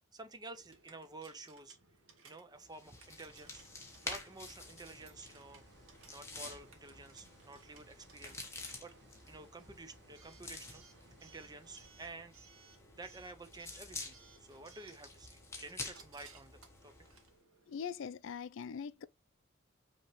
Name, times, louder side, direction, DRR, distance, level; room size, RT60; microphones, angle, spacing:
voice 1, 0.1-1.8 2.2-3.6 4.0-5.6 6.1-8.4 8.8-8.9 9.3-12.3 12.9-16.9, right 3 dB, 20° right, 0.6 m, -51 dB
Coin (dropping) / Alarm, 0.5-18.0, right 5 dB, 85° right, 1.3 m, -63 dB
sound 1, 2.6-17.3, left 3 dB, 15° left, 1.1 m, -49 dB
sound 2, 3.2-11.9, right 2 dB, 60° right, 1.3 m, -64 dB
voice 2, 17.7-19.1, left 7 dB, 65° left, 0.4 m, -42 dB
5.5 x 2.9 x 3.1 m
head